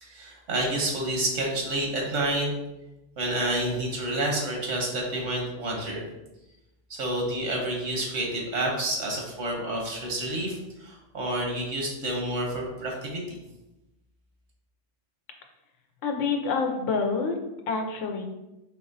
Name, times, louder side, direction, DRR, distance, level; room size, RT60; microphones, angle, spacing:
voice 1, 0.0-2.5 3.2-6.0 6.9-13.2, right 1 dB, 90° right, -1 dB, 1.2 m, -29 dB
voice 2, 16.0-17.4 17.7-18.3, left 4 dB, 85° left, 3 dB, 0.9 m, -27 dB
4.3 x 2.9 x 2.6 m, 0.96 s
omnidirectional pair, 1.2 m